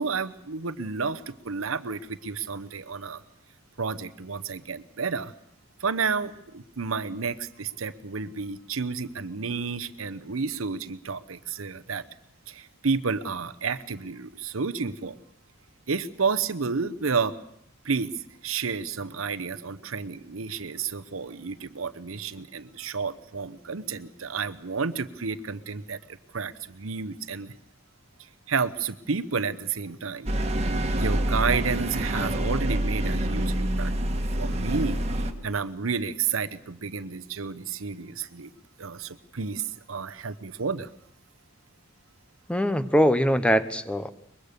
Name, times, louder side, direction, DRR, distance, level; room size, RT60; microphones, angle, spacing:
voice 1, 0.0-3.2 3.8-5.3 5.8-12.0 12.5-15.2 15.9-17.3 17.8-26.0 26.3-27.5 28.5-30.3 31.0-38.5 38.8-40.9, right 5 dB, 85° right, 12 dB, 0.9 m, -31 dB
sound 1, 30.3-35.3, right 1 dB, 30° right, 1.8 m, -26 dB
voice 2, 42.5-44.1, equal, 5° left, 12 dB, 0.8 m, -22 dB
23.0 x 21.5 x 6.7 m, 0.75 s
head